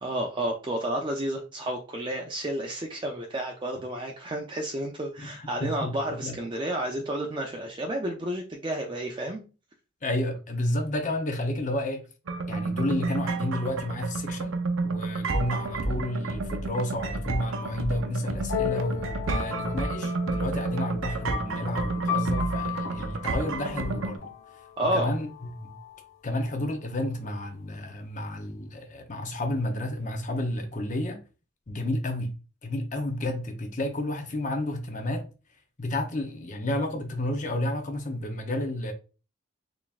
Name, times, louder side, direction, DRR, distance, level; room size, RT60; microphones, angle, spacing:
voice 1, 0.0-9.4 24.8-25.1, right 1 dB, 25° right, 0.5 m, -31 dB
voice 2, 5.2-5.9 6.2-6.4 10.0-12.0 12.5-14.6 14.8-24.3 24.8-25.7 26.2-31.2 31.7-32.3 32.6-35.3 35.8-38.9, left 1 dB, 40° left, 0.7 m, -31 dB
sound 1, 12.3-24.2, right 3 dB, 90° right, 0.6 m, -30 dB
sound 2, 18.5-26.0, left 10 dB, 85° left, 1.1 m, -36 dB
4.0 x 3.4 x 2.4 m
head